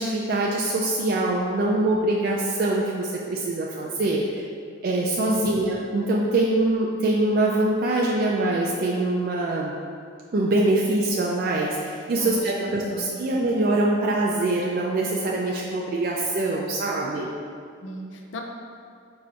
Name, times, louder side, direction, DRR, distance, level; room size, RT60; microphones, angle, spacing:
voice 1, 0.0-4.4 4.8-9.7 10.3-17.3, right 2 dB, 50° right, -2 dB, 0.3 m, -24 dB
voice 2, 5.3-5.6 12.1-13.2 17.8-18.4, left 1 dB, 75° left, 2 dB, 0.5 m, -37 dB
4.7 x 2.5 x 4.3 m, 2.3 s
head